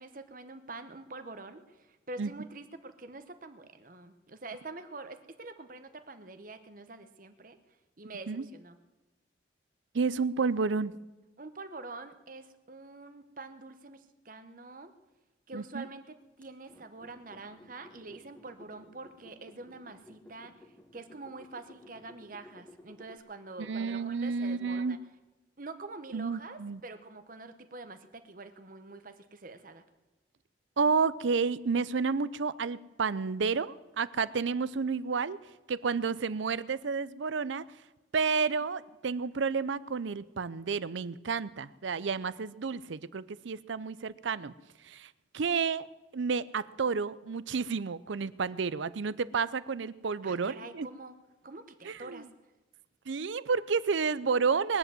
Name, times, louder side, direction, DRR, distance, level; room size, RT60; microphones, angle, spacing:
voice 1, 0.0-7.6 8.0-8.8 11.4-14.9 15.5-20.6 20.9-25.0 25.6-29.8 50.2-51.1 51.4-52.3, right 3 dB, 45° right, 10 dB, 1.0 m, -46 dB
voice 2, 9.9-10.9 15.5-15.9 23.6-25.0 26.1-26.8 30.8-35.4 35.7-37.6 38.1-44.5 44.8-45.9 46.1-50.9 51.8-52.2 53.1-54.8, right 5 dB, 75° right, 18 dB, 0.5 m, -31 dB
sound 1, 16.4-23.2, left 1 dB, 5° left, 1.3 m, -56 dB
20.5 x 8.0 x 7.7 m, 1.1 s
head